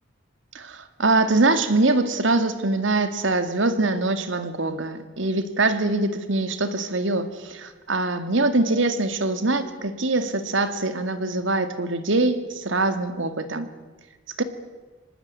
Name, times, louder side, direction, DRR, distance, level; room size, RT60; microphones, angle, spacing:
voice 1, 0.5-13.7 14.4-14.5, right 2 dB, 70° right, 10 dB, 2.3 m, -23 dB
24.5 x 19.5 x 9.7 m, 1.3 s
head